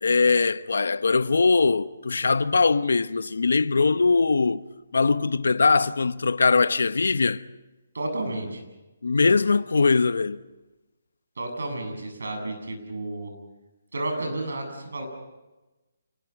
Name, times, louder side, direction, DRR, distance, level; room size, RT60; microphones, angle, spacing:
voice 1, 0.0-4.6 4.9-7.4 9.0-10.4, left 4 dB, 85° left, 1.0 m, -21 dB
voice 2, 7.9-8.6 11.4-13.3 13.9-15.1, right 2 dB, 85° right, 7.9 m, -31 dB
28.0 x 21.0 x 6.0 m
hypercardioid pair, 165°, 0 cm